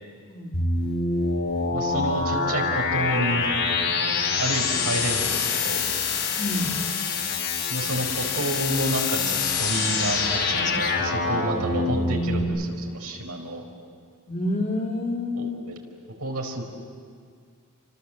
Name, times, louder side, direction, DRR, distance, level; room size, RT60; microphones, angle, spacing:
voice 1, 0.3-0.6 6.4-6.7 14.3-15.6, left 2 dB, 35° left, -1 dB, 3.3 m, -28 dB
sound 1, 0.5-12.4, left 4 dB, 55° left, 5.3 m, -25 dB
voice 2, 1.7-3.6 4.4-5.8 7.7-13.6 15.3-15.7 16.2-16.6, right 1 dB, 85° right, 2 dB, 4.7 m, -29 dB
sound 2, 9.4-11.0, left 3 dB, 20° left, 2.1 m, -35 dB
29.5 x 25.0 x 7.6 m, 2.1 s
head